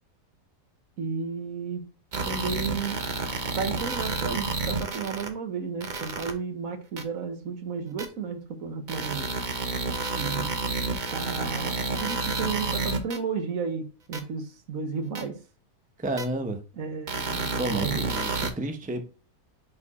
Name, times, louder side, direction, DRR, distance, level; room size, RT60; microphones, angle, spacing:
voice 1, 1.0-1.8 2.2-3.0 3.6-9.3 10.1-10.5 11.1-15.4 16.8-18.0, right 5 dB, 75° right, 1.4 m, -33 dB
sound 1, 2.1-5.3 5.8-6.3 7.0-7.1 8.0-8.1 8.9-13.2 14.1-14.2 15.1-15.2 16.2-16.3 17.1-18.5, right 3 dB, 40° right, 0.9 m, -30 dB
voice 2, 16.0-16.6 17.5-19.0, right 2 dB, 10° right, 0.6 m, -30 dB
5.2 x 4.4 x 4.2 m
omnidirectional pair, 1.5 m